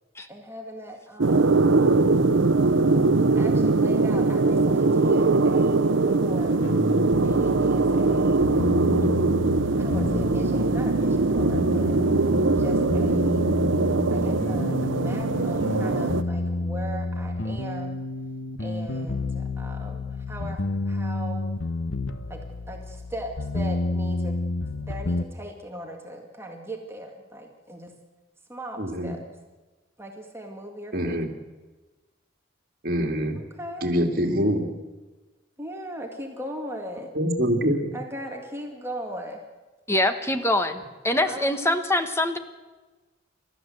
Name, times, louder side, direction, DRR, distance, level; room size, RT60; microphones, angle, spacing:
voice 1, 0.3-1.7 2.8-6.7 7.2-9.1 9.7-12.0 12.5-13.6 14.1-18.0 18.6-20.6 20.9-21.5 22.3-22.4 22.7-24.4 24.8-27.9 28.5-29.2 30.0-31.2 33.6-33.9 35.6-37.1 37.9-39.4 41.2-41.5, equal, 15° right, 2 dB, 2.1 m, -38 dB
sound 1, 1.2-16.2, right 3 dB, 85° right, 0.8 m, -21 dB
sound 2, 6.6-25.2, left 2 dB, 85° left, 1.2 m, -30 dB
voice 2, 28.8-29.2 30.9-31.3 32.8-33.4 33.8-34.7 37.1-38.0, equal, 50° right, 4 dB, 2.7 m, -25 dB
voice 3, 39.9-42.4, left 1 dB, 15° left, 8 dB, 1.4 m, -24 dB
29.0 x 13.5 x 7.9 m, 1.2 s
head